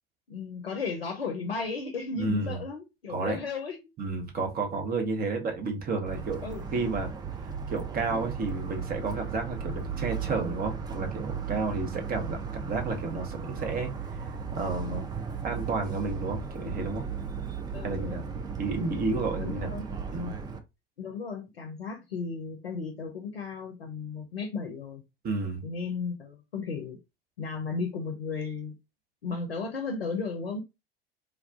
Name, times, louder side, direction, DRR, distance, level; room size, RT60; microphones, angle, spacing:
voice 1, 0.3-3.8 6.4-6.7 17.7-18.2 19.4-19.9 21.0-25.0 25.6-27.0 27.4-28.8 29.2-30.6, left 4 dB, 85° left, 0.5 m, -34 dB
voice 2, 2.2-2.6 3.1-3.4 4.0-6.4 6.7-7.1 7.7-13.9 14.5-15.1 15.4-17.0 17.8-18.2 18.6-19.7 20.1-20.3 25.2-25.6, right 3 dB, 30° right, 0.8 m, -31 dB
Motor vehicle (road) / Siren, 6.1-20.6, right 6 dB, 15° right, 0.3 m, -36 dB
3.4 x 2.3 x 2.4 m
figure-of-eight pair, 70°, 29 cm